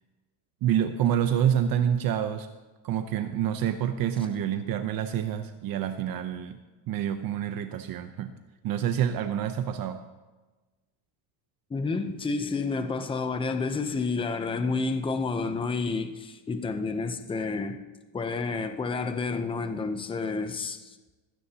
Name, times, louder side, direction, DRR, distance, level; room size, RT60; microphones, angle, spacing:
voice 1, 0.6-2.5 2.8-6.6 6.9-8.3 8.6-10.0, right 9 dB, 45° right, 0.8 m, -27 dB
voice 2, 11.7-17.8 18.1-21.0, left 4 dB, 10° left, 0.7 m, -30 dB
21.5 x 16.5 x 2.9 m
cardioid pair, 150°, 48 cm